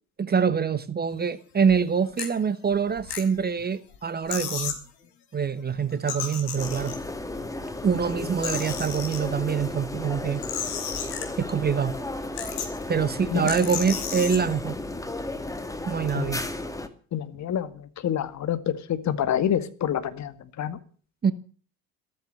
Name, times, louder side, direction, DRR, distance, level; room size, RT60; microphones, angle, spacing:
voice 1, 0.2-4.8 5.3-7.0 7.8-10.4 11.4-11.9 12.9-14.8 15.9-16.4 21.2-21.3, right 6 dB, 20° right, 15 dB, 1.2 m, -25 dB
sound 1, 1.5-1.7 2.2-2.3 2.9-3.6 3.9-4.0 4.3-4.8 5.9-7.2 7.9-9.2 10.2-11.6 11.9-12.0 12.3-12.9 13.4-14.4, left 8 dB, 55° left, 5.5 m, -33 dB
sound 2, 6.6-16.9, left 2 dB, 5° left, 2.3 m, -34 dB
voice 2, 17.1-20.8, left 9 dB, 35° left, 11 dB, 2.1 m, -28 dB
15.0 x 14.0 x 6.5 m, 0.42 s
figure-of-eight pair, 65°, 45 cm